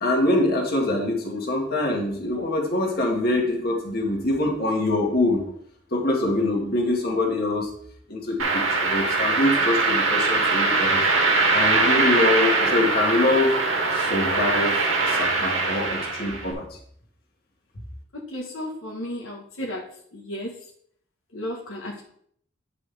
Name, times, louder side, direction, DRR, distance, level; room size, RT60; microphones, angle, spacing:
voice 1, 0.0-5.4 5.9-7.7 8.1-11.1 11.5-13.5 13.9-14.8 15.1-16.7, left 2 dB, 45° left, 0 dB, 1.9 m, -24 dB
sound 1, 8.4-16.5, right 3 dB, 75° right, 2.0 m, -22 dB
voice 2, 18.3-19.8 20.3-20.5 21.3-22.0, left 1 dB, 75° left, -2 dB, 1.4 m, -33 dB
9.3 x 6.0 x 3.4 m, 0.64 s
head